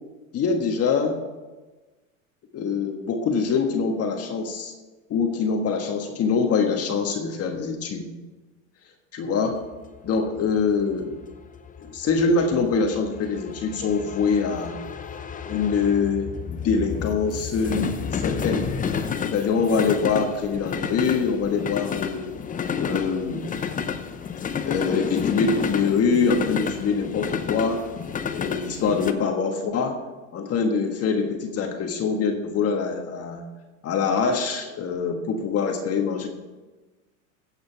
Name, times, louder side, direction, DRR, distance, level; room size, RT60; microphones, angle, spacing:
voice 1, 0.3-1.2 2.5-4.7 5.1-8.1 9.1-9.6 10.0-11.2 11.8-14.8 15.5-18.7 19.2-22.3 22.8-23.5 24.7-27.8 28.3-30.0 30.3-33.4 33.8-36.3, left 5 dB, 35° left, 4 dB, 1.5 m, -24 dB
sound 1, 9.6-29.1, left 6 dB, 20° left, 0.8 m, -31 dB
15.5 x 8.1 x 4.6 m, 1.2 s
hypercardioid pair, 105°, 40 cm